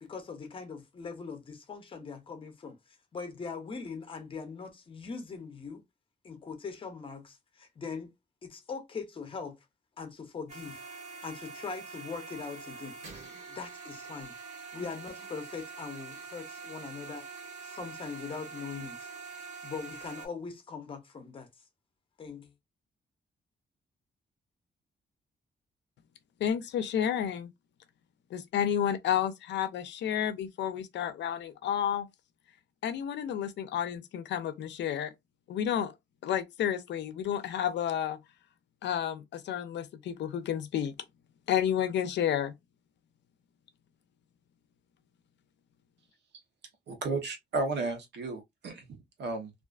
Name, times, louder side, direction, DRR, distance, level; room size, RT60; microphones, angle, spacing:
voice 1, 0.0-2.8 3.1-5.8 6.2-8.1 8.4-9.6 10.0-10.8 11.2-12.9 13.5-14.3 14.7-17.3 17.6-19.1 19.6-21.5 22.2-22.5, left 5 dB, 30° left, 0.6 m, -41 dB
sound 1, 10.5-20.3, right 4 dB, 40° right, 0.8 m, -45 dB
voice 2, 26.4-27.5 28.3-32.1 32.8-35.1 35.5-35.9 36.2-38.2 38.8-40.9 41.5-42.5, left 9 dB, 90° left, 0.5 m, -31 dB
voice 3, 46.9-49.5, right 3 dB, 75° right, 0.9 m, -34 dB
2.4 x 2.3 x 2.3 m
wide cardioid pair, 175°, 18 cm